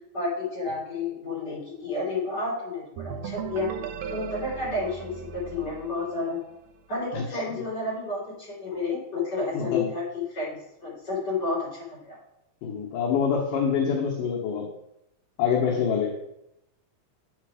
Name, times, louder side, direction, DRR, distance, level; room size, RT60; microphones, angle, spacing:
voice 1, 0.1-3.7 4.1-6.4 6.9-12.2, left 3 dB, 30° left, -6 dB, 3.5 m, -31 dB
sound 1, 3.0-6.7, right 7 dB, 90° right, 2.3 m, -37 dB
voice 2, 9.5-9.9 12.6-14.7 15.4-16.1, left 6 dB, 75° left, -2 dB, 2.6 m, -25 dB
8.4 x 5.7 x 4.9 m, 0.83 s
omnidirectional pair, 3.9 m